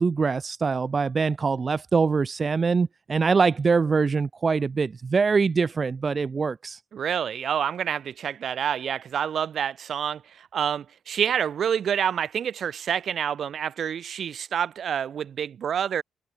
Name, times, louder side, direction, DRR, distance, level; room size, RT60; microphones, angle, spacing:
voice 1, 0.0-6.8, right 5 dB, 35° right, 1.9 m, -23 dB
voice 2, 6.9-16.0, right 8 dB, 60° right, 4.0 m, -28 dB
cardioid pair, 90°, 0 cm